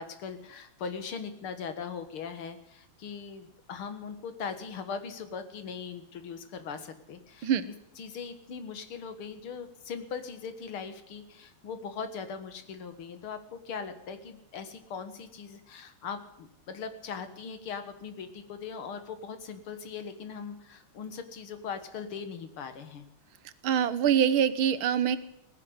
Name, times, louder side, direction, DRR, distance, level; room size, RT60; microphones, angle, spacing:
voice 1, 0.0-23.0, left 6 dB, 85° left, 10 dB, 2.4 m, -40 dB
voice 2, 23.6-25.2, right 9 dB, 75° right, 14 dB, 1.8 m, -24 dB
17.5 x 10.0 x 8.0 m, 0.84 s
omnidirectional pair, 2.3 m